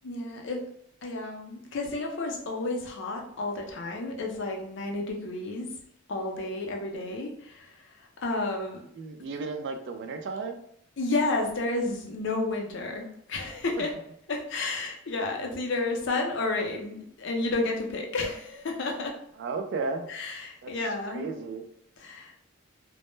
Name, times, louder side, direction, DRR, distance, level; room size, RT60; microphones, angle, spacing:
voice 1, 0.0-0.6 1.0-5.7 6.1-8.8 11.0-14.0 14.3-19.1 20.1-21.3 22.0-22.3, left 2 dB, 55° left, 2 dB, 0.5 m, -31 dB
voice 2, 8.9-10.6 13.8-13.9 19.4-20.1 20.6-20.7 21.1-21.6, right 4 dB, 55° right, 6 dB, 0.3 m, -34 dB
2.1 x 2.0 x 3.0 m, 0.69 s
head